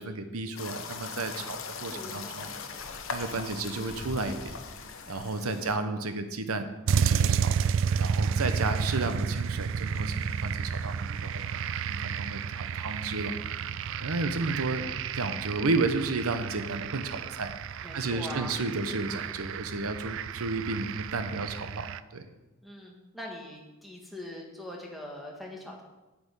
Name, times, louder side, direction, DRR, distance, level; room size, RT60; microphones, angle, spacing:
voice 1, 0.0-2.5 3.1-4.5 5.1-6.7 6.9-7.5 8.0-11.5 11.9-13.3 14.0-17.5 17.9-21.9 22.1-22.2, right 3 dB, 85° right, 9 dB, 0.9 m, -32 dB
sound 1, 0.6-5.7, left 5 dB, 65° left, 0.9 m, -40 dB
voice 2, 1.4-3.0 5.4-5.7 17.8-18.6 22.6-25.8, equal, ahead, -1 dB, 1.7 m, -43 dB
sound 2, 6.9-22.0, right 6 dB, 60° right, 0.4 m, -31 dB
8.8 x 8.0 x 5.5 m, 1.1 s
head